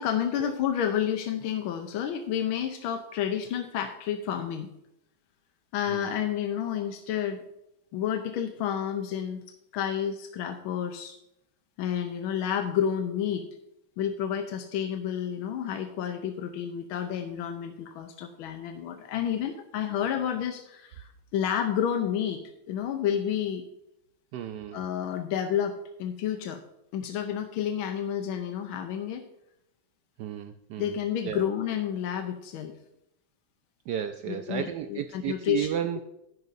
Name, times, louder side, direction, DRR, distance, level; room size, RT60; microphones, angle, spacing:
voice 1, 0.0-4.7 5.7-7.4 7.9-9.4 9.7-11.2 11.8-13.5 14.0-22.4 22.7-23.6 24.7-26.6 26.9-29.3 30.8-32.7 34.3-35.7 36.0-36.1, left 9 dB, 90° left, 6 dB, 1.6 m, -30 dB
voice 2, 24.3-24.8 30.2-31.0 31.2-31.5 33.9-36.0, right 10 dB, 75° right, 8 dB, 1.0 m, -33 dB
11.5 x 10.5 x 2.6 m, 0.84 s
omnidirectional pair, 2.2 m